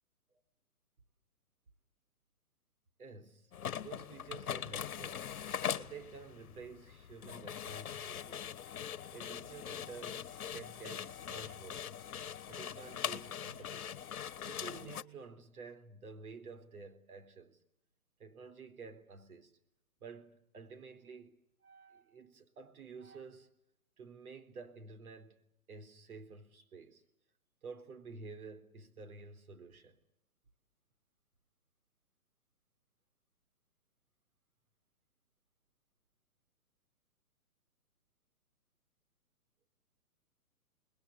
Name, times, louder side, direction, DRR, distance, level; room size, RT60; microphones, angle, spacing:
voice 1, 3.0-3.5 3.8-5.3 5.8-8.5 9.1-11.9 12.5-13.9 14.5-17.6 18.2-19.5 20.0-23.5 24.0-25.4 25.7-27.0 27.6-30.0, right 4 dB, 70° right, 3.9 m, -51 dB
sound 1, 3.5-15.0, left 8 dB, 70° left, 1.4 m, -42 dB
29.0 x 21.0 x 8.1 m
hypercardioid pair, 150°, 45 cm